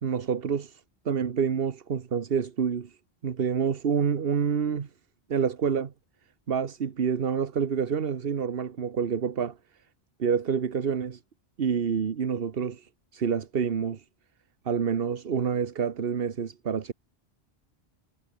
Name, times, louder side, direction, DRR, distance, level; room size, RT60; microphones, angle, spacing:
voice 1, 0.0-2.9 3.2-4.9 5.3-5.9 6.5-9.6 10.2-11.2 11.6-14.0 14.6-16.9, right 7 dB, 65° right, 1.3 m, -28 dB
omnidirectional pair, 1.0 m